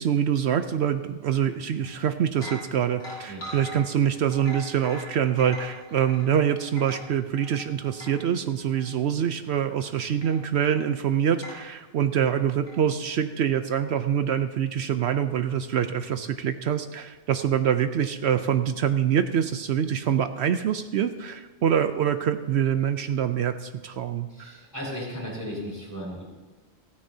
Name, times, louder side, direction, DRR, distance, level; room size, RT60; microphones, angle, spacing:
voice 1, 0.0-24.5, right 9 dB, 75° right, 9 dB, 0.9 m, -25 dB
sound 1, 1.8-2.0 2.3-8.3 8.7-8.9 10.2-10.9 11.4-11.7 12.7-12.8, left 1 dB, 65° left, 3.0 m, -42 dB
voice 2, 24.3-26.2, equal, 15° left, -4 dB, 5.6 m, -35 dB
28.5 x 9.8 x 2.7 m, 1.2 s
omnidirectional pair, 1.1 m